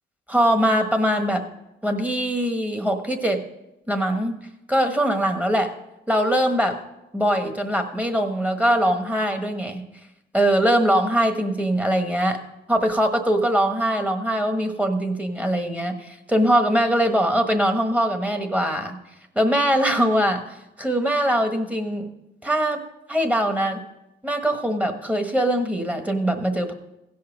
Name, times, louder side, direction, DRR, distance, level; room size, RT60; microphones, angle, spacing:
voice 1, 0.3-1.4 1.8-3.4 3.9-4.4 4.7-5.7 6.1-6.8 7.1-9.8 10.3-12.4 12.7-19.0 19.3-20.4 20.8-22.1 22.4-22.8 23.1-23.8 24.2-26.7, right 1 dB, 5° right, 6 dB, 1.3 m, -22 dB
16.0 x 5.6 x 5.2 m, 0.91 s
cardioid pair, 90°, 20 cm